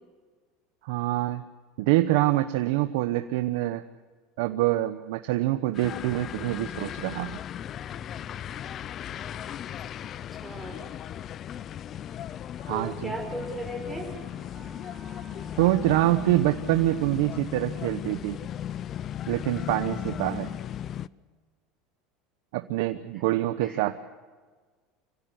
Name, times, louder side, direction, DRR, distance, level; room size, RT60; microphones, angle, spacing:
voice 1, 0.8-1.4 1.8-3.8 4.4-7.4 12.7-13.1 15.6-18.4 19.3-20.5 22.5-24.0, right 16 dB, 80° right, 9 dB, 0.9 m, -25 dB
sound 1, 5.7-21.1, left 10 dB, 40° left, 0.5 m, -37 dB
voice 2, 10.4-10.9 12.7-14.2 23.6-24.0, equal, ahead, 4 dB, 6.0 m, -36 dB
Wind instrument woodwind instrument, 12.7-18.0, right 2 dB, 25° right, 7.2 m, -54 dB
25.5 x 16.5 x 7.9 m, 1.4 s
supercardioid pair, 115°, 0 cm